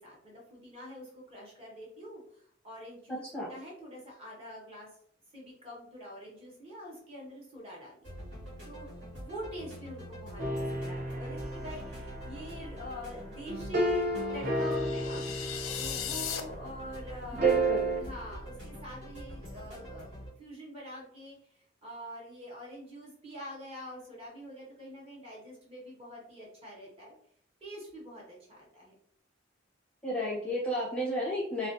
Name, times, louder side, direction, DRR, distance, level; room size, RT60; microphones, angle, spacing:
voice 1, 0.0-4.9 5.3-8.1 8.6-15.2 15.7-17.7 17.9-27.2 27.6-28.9, equal, 30° right, -4 dB, 0.9 m, -45 dB
voice 2, 3.1-3.5 17.4-17.8 30.0-31.7, equal, 5° left, -7 dB, 0.6 m, -32 dB
sound 1, 8.0-20.3, equal, 75° right, 1.3 m, -45 dB
sound 2, 10.4-16.6 17.4-18.0, right 1 dB, 45° right, 0.5 m, -32 dB
sound 3, 14.4-16.4, left 9 dB, 90° left, 0.3 m, -37 dB
2.4 x 2.2 x 2.5 m, 0.63 s
head